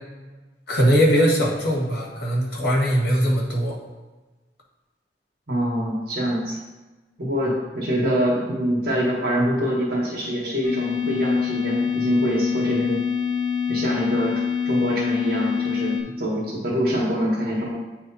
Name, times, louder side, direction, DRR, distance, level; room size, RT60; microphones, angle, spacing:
voice 1, 0.7-3.8, equal, 65° left, -3 dB, 1.7 m, -20 dB
voice 2, 5.5-6.6 7.2-13.0 13.7-14.4 14.6-17.7, equal, 60° right, -4 dB, 1.5 m, -24 dB
sound 1, 10.6-16.0, left 7 dB, 15° left, 1.4 m, -25 dB
8.7 x 3.3 x 4.1 m, 1.2 s
head